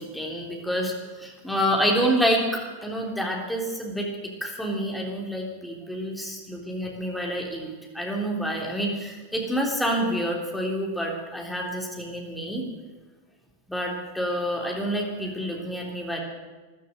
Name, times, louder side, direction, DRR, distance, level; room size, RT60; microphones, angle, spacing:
voice 1, 0.0-4.1 4.4-7.7 7.9-12.6 13.7-16.2, equal, ahead, -1 dB, 3.5 m, -28 dB
14.0 x 12.0 x 7.9 m, 1.3 s
figure-of-eight pair, 90°, 0 cm